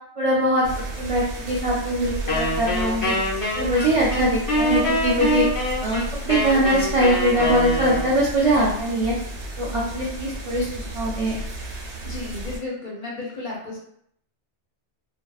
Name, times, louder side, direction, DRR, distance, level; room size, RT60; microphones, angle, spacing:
voice 1, 0.2-0.7 1.0-3.1 3.6-5.5 5.8-6.0 6.3-9.1 9.6-11.4, right 1 dB, 60° right, -5 dB, 0.3 m, -22 dB
sound 1, 0.6-12.6, right 1 dB, 80° right, 1.0 m, -33 dB
Wind instrument woodwind instrument, 2.3-8.3, left 1 dB, 35° left, 0.3 m, -25 dB
voice 2, 12.0-13.8, left 2 dB, 50° left, -4 dB, 0.7 m, -33 dB
2.6 x 2.1 x 2.3 m, 0.70 s
omnidirectional pair, 1.2 m